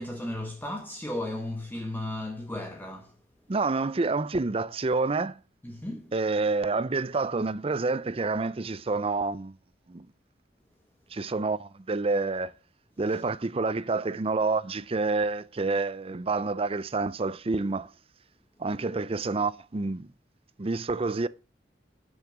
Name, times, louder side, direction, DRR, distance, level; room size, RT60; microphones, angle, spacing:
voice 1, 0.0-3.2 5.6-6.1, left 1 dB, 10° left, 1.1 m, -35 dB
voice 2, 3.5-5.4 6.1-9.5 9.9-10.1 11.1-12.5 13.0-17.9 18.6-20.1 20.6-21.3, right 3 dB, 35° right, 0.5 m, -28 dB
8.9 x 6.5 x 7.4 m
head